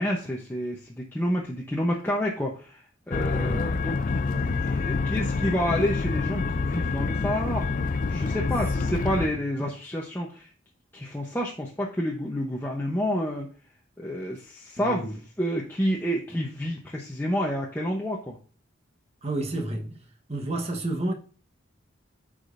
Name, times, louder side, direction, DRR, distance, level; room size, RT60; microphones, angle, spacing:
voice 1, 0.0-7.7 8.1-10.5 10.9-13.5 14.0-18.4, equal, 10° left, 0.8 m, -29 dB
sound 1, 3.1-9.3, left 4 dB, 40° left, 0.4 m, -27 dB
voice 2, 3.3-3.7 8.8-9.0 14.8-15.1 19.2-19.9 20.3-21.1, right 1 dB, 30° right, 1.2 m, -30 dB
12.5 x 5.0 x 2.6 m
head